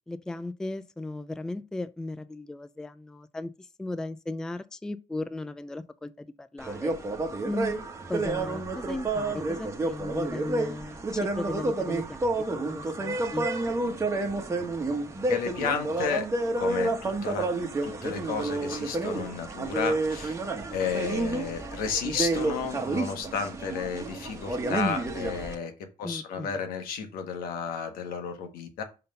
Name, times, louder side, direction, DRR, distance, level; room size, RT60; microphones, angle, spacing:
voice 1, 0.1-6.9 7.4-7.8 8.1-13.5 26.0-26.6, left 2 dB, 5° left, 0.3 m, -36 dB
sound 1, 6.6-25.5, right 2 dB, 20° right, 1.1 m, -30 dB
voice 2, 15.3-16.3 16.6-17.5 17.8-20.4 20.7-25.7 26.0-28.8, left 6 dB, 85° left, 1.5 m, -32 dB
5.6 x 3.8 x 5.3 m
cardioid pair, 145°, 15 cm